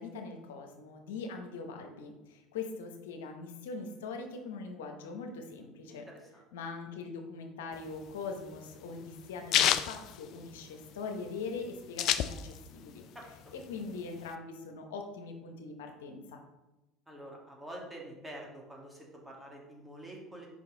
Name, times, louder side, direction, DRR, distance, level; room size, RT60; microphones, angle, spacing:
voice 1, 0.0-6.1 6.5-13.0 13.5-16.4, left 4 dB, 90° left, 4 dB, 0.8 m, -42 dB
voice 2, 5.9-6.4 13.1-13.2 17.1-20.5, right 1 dB, 10° right, -2 dB, 1.9 m, -47 dB
sound 1, 7.8-10.9 11.3-11.4 11.5-12.8 13.2-14.3, left 11 dB, 60° left, 0.4 m, -29 dB
5.2 x 5.2 x 3.8 m, 1.0 s
supercardioid pair, 90°, 0 cm